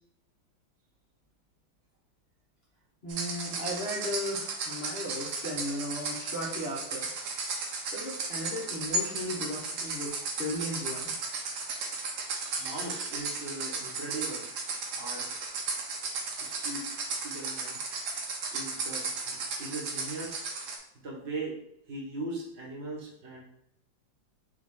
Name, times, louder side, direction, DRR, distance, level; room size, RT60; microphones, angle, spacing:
voice 1, 3.0-7.1 7.9-10.1 10.4-11.1 12.4-13.1, left 1 dB, 50° left, -5 dB, 0.8 m, -36 dB
sound 1, 3.1-20.8, right 3 dB, 65° right, 1.2 m, -35 dB
voice 2, 12.6-14.4 14.9-15.3 16.4-18.1 18.5-20.4 21.0-21.6 21.9-23.4, right 2 dB, 40° right, -2 dB, 1.1 m, -39 dB
5.1 x 2.3 x 3.7 m, 0.76 s
omnidirectional pair, 2.1 m